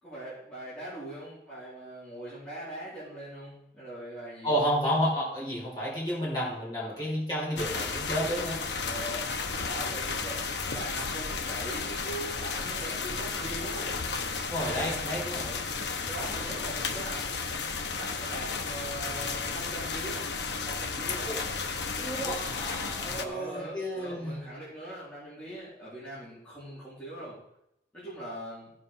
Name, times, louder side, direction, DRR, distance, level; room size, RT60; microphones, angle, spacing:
voice 1, 0.0-4.5 6.8-7.0 8.8-13.9 14.7-14.9 15.4-15.6 16.0-17.4 17.9-20.3 20.6-21.3 22.1-22.4 23.1-27.4 27.9-28.7, right 1 dB, 5° left, -11 dB, 4.1 m, -41 dB
voice 2, 4.4-8.6 14.5-15.5 21.2-21.4 22.0-24.4, equal, 25° left, -6 dB, 4.8 m, -31 dB
sound 1, 7.6-23.2, left 4 dB, 75° left, 1.1 m, -33 dB
15.0 x 5.1 x 5.6 m, 0.79 s
head